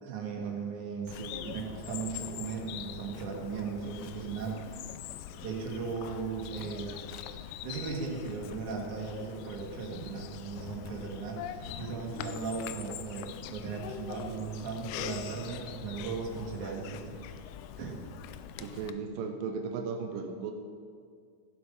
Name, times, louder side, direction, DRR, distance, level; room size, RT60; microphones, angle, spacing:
voice 1, 0.0-1.2 1.4-5.0 5.4-7.1 7.6-17.1 17.8-18.0, right 5 dB, 55° right, -1 dB, 2.7 m, -37 dB
Bird vocalization bird call bird song, 1.1-18.9, left 10 dB, 80° left, 2.4 m, -43 dB
voice 2, 1.2-1.6 18.6-20.5, right 5 dB, 85° right, 4 dB, 2.0 m, -36 dB
15.0 x 7.8 x 5.4 m, 2.1 s
omnidirectional pair, 4.8 m